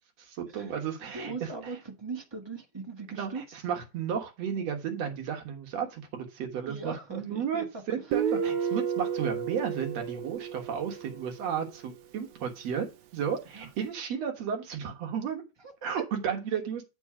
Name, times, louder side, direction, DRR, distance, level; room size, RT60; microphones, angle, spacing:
voice 1, 0.2-1.3 1.6-1.7 3.1-15.4 15.8-16.8, right 7 dB, 65° right, 2.5 m, -33 dB
voice 2, 1.0-3.4 6.7-7.6 8.1-8.2 13.5-13.7 15.6-15.7, right 4 dB, 20° right, 0.7 m, -40 dB
Guitar, 8.1-11.6, right 8 dB, 85° right, 2.2 m, -32 dB
8.8 x 5.4 x 4.8 m
omnidirectional pair, 3.3 m